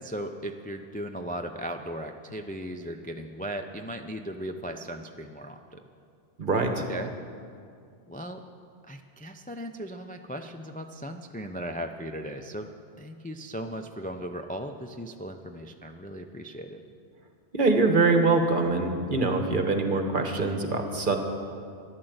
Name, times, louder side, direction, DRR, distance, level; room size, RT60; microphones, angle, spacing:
voice 1, 0.0-5.8 6.9-7.1 8.1-8.4 8.9-12.7 13.0-16.8, equal, 10° left, 4 dB, 0.4 m, -37 dB
voice 2, 6.4-6.8 17.5-21.2, right 3 dB, 45° right, 4 dB, 1.4 m, -24 dB
13.0 x 11.5 x 8.0 m, 2.3 s
omnidirectional pair, 1.2 m